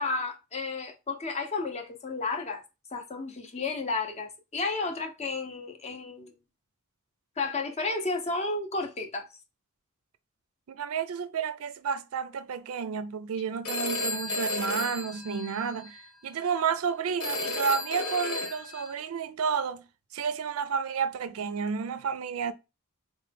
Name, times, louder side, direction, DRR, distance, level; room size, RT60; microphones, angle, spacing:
voice 1, 0.0-2.6 2.9-6.3 7.4-9.3, left 3 dB, 30° left, 0.6 m, -32 dB
voice 2, 10.7-19.8 20.1-22.5, right 6 dB, 75° right, 0.4 m, -31 dB
Telephone, 13.6-16.0 17.2-18.9, left 2 dB, 80° left, 1.2 m, -33 dB
4.4 x 2.1 x 3.3 m
head